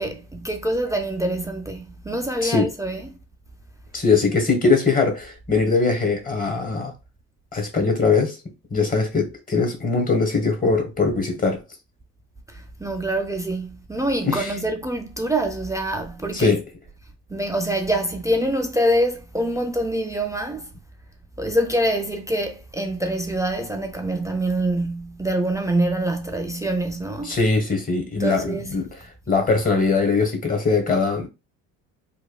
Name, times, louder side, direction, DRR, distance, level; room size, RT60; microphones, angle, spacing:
voice 1, 0.0-3.2 12.5-16.6 17.3-20.7 21.4-27.4 28.2-28.8, right 1 dB, 10° right, 0.3 m, -25 dB
voice 2, 3.9-6.9 7.5-8.4 8.7-11.6 14.2-14.5 16.3-16.6 27.2-28.9 29.3-31.3, left 4 dB, 20° left, 1.2 m, -21 dB
3.0 x 2.2 x 2.3 m
hypercardioid pair, 60°, 40 cm